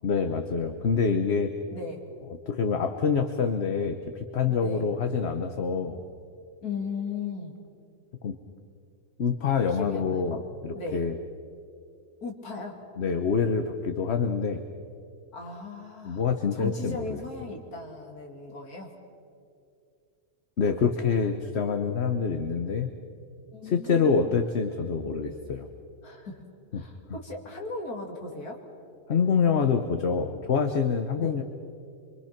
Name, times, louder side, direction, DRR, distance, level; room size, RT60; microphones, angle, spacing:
voice 1, 0.0-1.5 2.5-6.0 8.2-8.4 9.2-11.2 13.0-14.6 16.0-17.2 20.6-22.9 23.6-25.7 26.7-27.2 29.1-31.4, left 5 dB, 50° left, 7 dB, 1.1 m, -26 dB
voice 2, 1.7-2.0 4.5-4.9 6.6-7.6 9.7-10.3 10.7-11.0 12.2-12.8 15.3-16.3 16.5-18.9 20.8-20.9 23.5-24.4 26.0-26.5 26.7-28.6 31.2-31.4, left 4 dB, 75° left, 1 dB, 3.2 m, -37 dB
25.5 x 24.5 x 5.9 m, 2.5 s
omnidirectional pair, 1.6 m